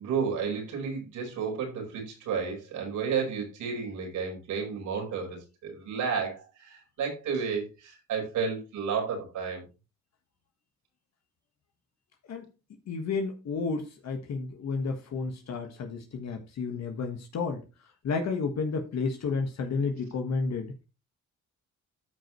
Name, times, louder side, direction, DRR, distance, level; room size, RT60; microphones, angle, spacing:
voice 1, 0.0-9.6, right 6 dB, 80° right, 1 dB, 5.0 m, -32 dB
voice 2, 12.9-17.6 18.0-20.7, left 4 dB, 60° left, 4 dB, 1.6 m, -31 dB
14.0 x 5.2 x 3.1 m, 0.29 s
cardioid pair, 90°, 30 cm